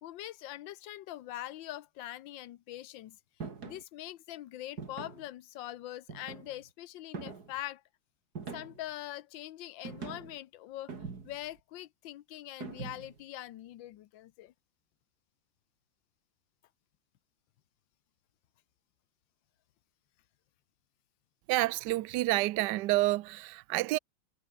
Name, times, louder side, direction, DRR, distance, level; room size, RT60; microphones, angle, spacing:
voice 1, 0.0-3.2 3.6-7.8 8.5-10.9 11.2-14.5, left 14 dB, 90° left, 1.5 m, -43 dB
sound 1, 3.4-3.8 4.8-5.3 6.1-6.7 7.1-7.6 8.4-8.9 9.8-10.4 10.9-11.5 12.6-13.2, right 5 dB, 55° right, 3.1 m, -43 dB
voice 2, 21.5-24.0, right 18 dB, 70° right, 1.2 m, -29 dB
omnidirectional pair, 2.0 m